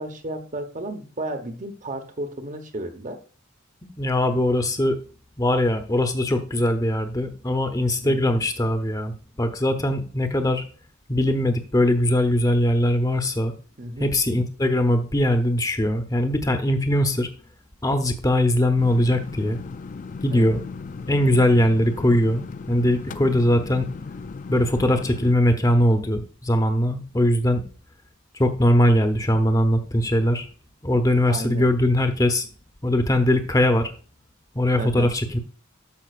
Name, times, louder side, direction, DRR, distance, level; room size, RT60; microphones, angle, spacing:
voice 1, 0.0-3.2 4.3-4.4 8.0-8.4 13.8-14.1 20.3-20.7 31.3-31.7 34.8-35.1, right 1 dB, 35° right, 8 dB, 1.1 m, -33 dB
voice 2, 4.0-5.0 5.4-10.6 11.1-13.5 14.0-17.3 17.8-19.6 20.2-20.6 21.1-23.9 24.5-27.6 28.3-30.5 30.8-32.5 32.8-33.9 34.5-35.4, left 1 dB, 15° left, 8 dB, 0.9 m, -21 dB
sound 1, 18.8-25.3, left 4 dB, 35° left, 0.4 m, -37 dB
13.0 x 5.6 x 2.4 m, 0.39 s
head